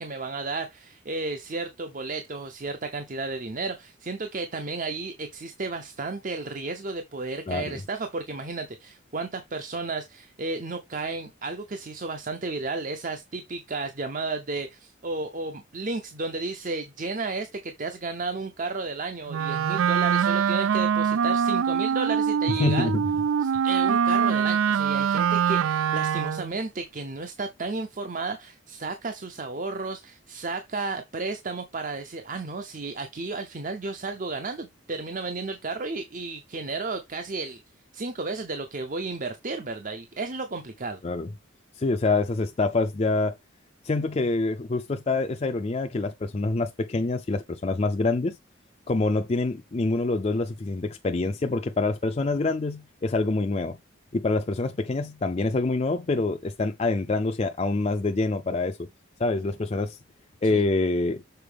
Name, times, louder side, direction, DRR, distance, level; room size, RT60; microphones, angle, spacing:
voice 1, 0.0-22.9 23.4-37.6 37.9-41.0 60.5-60.6, right 3 dB, 40° right, 0.7 m, -33 dB
voice 2, 7.5-7.8 22.6-23.1 41.0-41.3 41.8-43.4 43.8-48.4 48.9-53.8 54.1-58.9 59.2-60.0 60.4-61.2, left 3 dB, 30° left, 0.4 m, -26 dB
Wind instrument woodwind instrument, 19.3-26.5, right 7 dB, 85° right, 0.4 m, -24 dB
6.7 x 4.2 x 3.4 m
head